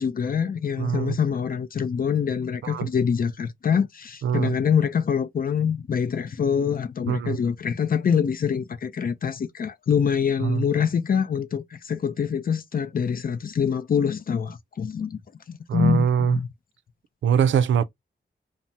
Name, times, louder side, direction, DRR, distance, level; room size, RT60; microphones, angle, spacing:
voice 1, 0.0-15.2 15.5-16.5, left 7 dB, 50° left, 0.5 m, -25 dB
voice 2, 0.8-1.2 2.6-2.9 4.2-4.6 7.1-7.4 10.4-10.6 15.7-16.4 17.2-17.8, right 8 dB, 80° right, 0.4 m, -23 dB
2.7 x 2.0 x 3.3 m
wide cardioid pair, 95°, 19 cm